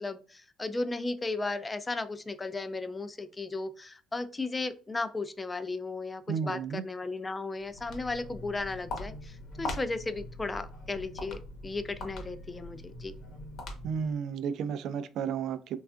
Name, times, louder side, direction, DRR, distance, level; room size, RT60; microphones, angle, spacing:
voice 1, 0.0-13.1, left 3 dB, 20° left, 0.3 m, -35 dB
voice 2, 6.3-6.8 13.8-15.8, right 7 dB, 65° right, 0.3 m, -32 dB
Walk footsteps, 7.6-14.1, left 2 dB, 70° left, 0.8 m, -42 dB
3.3 x 2.3 x 2.4 m
cardioid pair, 95°, 0 cm